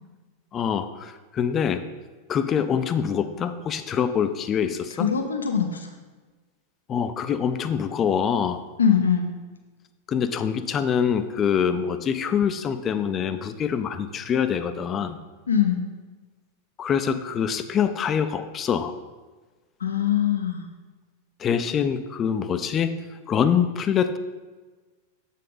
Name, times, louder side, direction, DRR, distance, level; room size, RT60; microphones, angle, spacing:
voice 1, 0.5-1.8 2.3-5.1 6.9-8.6 10.1-15.2 16.8-18.9 21.4-22.9 23.3-24.2, left 7 dB, 25° left, 11 dB, 0.4 m, -25 dB
voice 2, 4.9-6.0 8.8-9.3 15.5-15.8 19.8-20.7, left 8 dB, 70° left, 5 dB, 0.6 m, -22 dB
7.4 x 5.5 x 3.9 m, 1.3 s
figure-of-eight pair, 90°, 0 cm